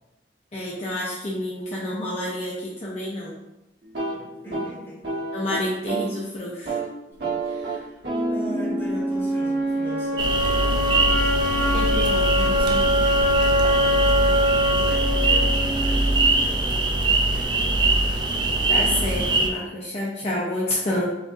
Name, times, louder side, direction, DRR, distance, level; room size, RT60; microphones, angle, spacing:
voice 1, 0.5-3.3 5.3-6.7 11.7-13.0 18.7-21.0, left 1 dB, 40° left, -5 dB, 0.6 m, -29 dB
sound 1, 3.8-6.2 6.5-6.9 7.2-11.1, right 3 dB, 80° right, 1.2 m, -31 dB
voice 2, 4.0-5.2 7.2-7.9 8.3-10.6 14.7-18.3 20.9-21.0, equal, 15° left, -6 dB, 1.4 m, -41 dB
sound 2, 8.4-16.4, equal, 55° right, 1.4 m, -23 dB
sound 3, 10.2-19.5, right 2 dB, 25° right, 0.4 m, -22 dB
5.9 x 2.5 x 2.6 m, 0.95 s
head